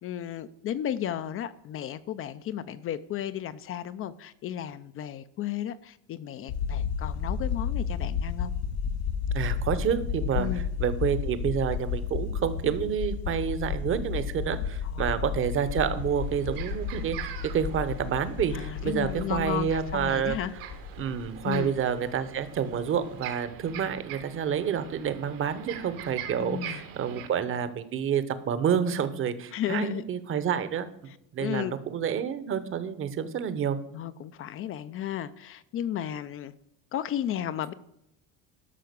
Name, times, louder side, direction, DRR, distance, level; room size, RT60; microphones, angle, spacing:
voice 1, 0.0-8.5 10.4-10.6 14.9-15.1 18.5-20.5 21.4-21.8 26.4-26.8 29.5-30.0 31.4-31.7 33.9-36.5 36.9-37.7, left 11 dB, 40° left, 13 dB, 0.5 m, -34 dB
sound 1, 6.5-22.1, left 6 dB, 70° left, 1.0 m, -32 dB
voice 2, 9.3-10.5 10.8-20.4 21.0-30.9 31.3-33.8, right 8 dB, 35° right, 13 dB, 1.0 m, -29 dB
sound 2, 15.7-27.3, right 10 dB, 70° right, 1.7 m, -43 dB
12.5 x 5.7 x 6.8 m, 0.80 s
cardioid pair, 140°, 36 cm